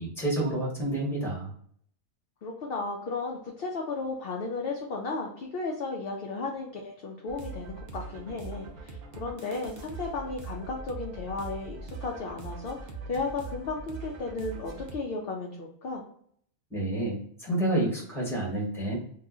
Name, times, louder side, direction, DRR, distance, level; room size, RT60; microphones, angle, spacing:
voice 1, 0.0-1.5 16.7-19.0, right 1 dB, ahead, -3 dB, 1.0 m, -29 dB
voice 2, 2.4-16.0, left 3 dB, 60° left, 0 dB, 0.6 m, -34 dB
sound 1, 7.3-15.0, right 3 dB, 65° right, 0.4 m, -41 dB
2.8 x 2.3 x 3.5 m, 0.63 s
omnidirectional pair, 1.4 m